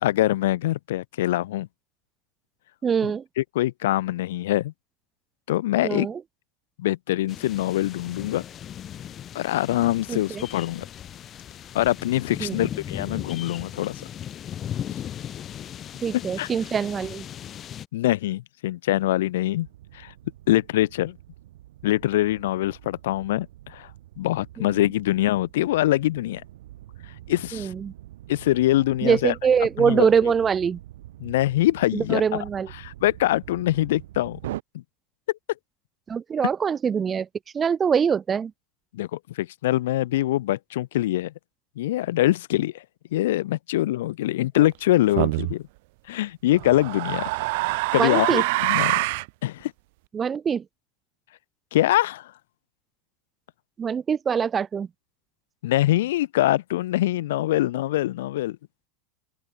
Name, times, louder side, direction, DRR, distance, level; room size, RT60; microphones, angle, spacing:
voice 1, 0.0-1.7 3.0-3.1 3.4-4.7 5.5-6.1 6.8-8.4 9.3-10.9 11.7-14.0 16.1-16.5 17.9-19.7 19.9-20.1 20.5-21.2 21.8-23.9 24.2-26.4 27.3-27.7 28.3-29.3 29.8-30.1 31.2-32.2 32.8-34.4 34.7-34.8 38.9-41.3 41.8-42.8 43.1-45.6 46.1-47.3 47.9-49.0 49.4-49.7 51.7-52.3 55.6-58.6, left 15 dB, 85° left, 1.2 m, -24 dB
voice 2, 2.8-3.2 5.8-6.2 10.1-10.4 12.4-12.6 16.0-17.2 27.5-27.9 29.0-30.8 31.9-32.7 36.1-37.3 37.5-38.5 44.6-44.7 48.0-48.4 50.1-50.6 53.8-54.9, right 7 dB, 20° right, 0.5 m, -23 dB
sound 1, 7.3-17.9, left 10 dB, 30° left, 2.4 m, -37 dB
sound 2, 19.6-34.6, right 14 dB, 90° right, 1.9 m, -44 dB
sound 3, 45.2-45.5 46.5-49.3, right 24 dB, 65° right, 1.1 m, -25 dB
open air
supercardioid pair, 145°, 0 cm